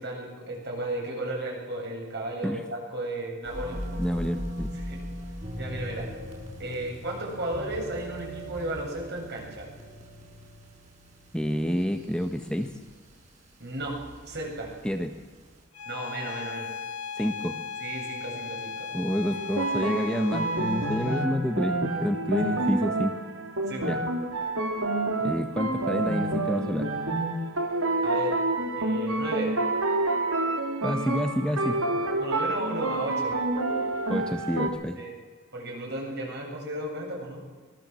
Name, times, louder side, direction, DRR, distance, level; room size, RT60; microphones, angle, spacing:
voice 1, 0.0-3.8 4.9-5.0 5.5-6.1 6.6-9.7 13.6-14.0 14.3-14.7 15.9-16.7 17.8-18.9 22.4-22.5 23.7-23.9 28.0-28.4 28.8-29.6 32.2-33.4 35.0-35.1 35.5-37.5, right 1 dB, 50° right, 0 dB, 8.0 m, -34 dB
sound 1, 3.4-15.6, equal, 30° right, 6.8 m, -39 dB
voice 2, 4.0-4.7 11.3-12.7 14.8-15.2 17.2-17.6 18.9-23.1 23.9-24.0 25.2-26.9 30.8-31.8 34.1-35.0, equal, 5° left, 5 dB, 1.2 m, -28 dB
Bowed string instrument, 15.7-21.4, left 5 dB, 85° left, 1.0 m, -37 dB
sound 2, 19.3-34.7, right 2 dB, 75° right, 3.2 m, -28 dB
24.5 x 21.5 x 7.7 m, 1.4 s
head